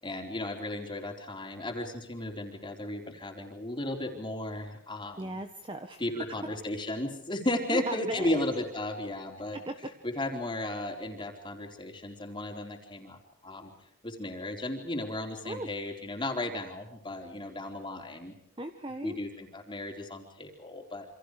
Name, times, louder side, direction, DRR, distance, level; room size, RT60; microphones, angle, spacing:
voice 1, 0.0-5.4 6.0-9.6 10.0-13.7 14.0-18.3 19.0-21.1, left 1 dB, 20° left, 2 dB, 4.2 m, -35 dB
voice 2, 5.2-6.2 7.7-8.4 9.7-9.8 15.4-15.7 18.6-19.2, right 1 dB, 25° right, 6 dB, 1.5 m, -36 dB
29.0 x 27.0 x 5.0 m, 0.69 s
head